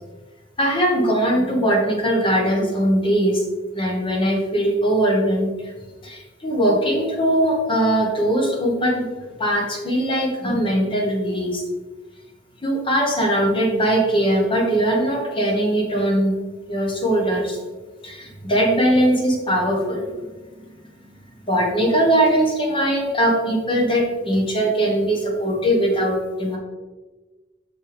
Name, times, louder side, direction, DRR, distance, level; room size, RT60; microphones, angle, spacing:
voice 1, 0.6-3.4 3.7-5.5 6.0-9.1 9.4-11.6 12.6-16.3 16.7-17.6 18.0-20.1 21.5-26.6, right 1 dB, 30° left, -1 dB, 1.4 m, -20 dB
5.9 x 5.7 x 3.6 m, 1.3 s
head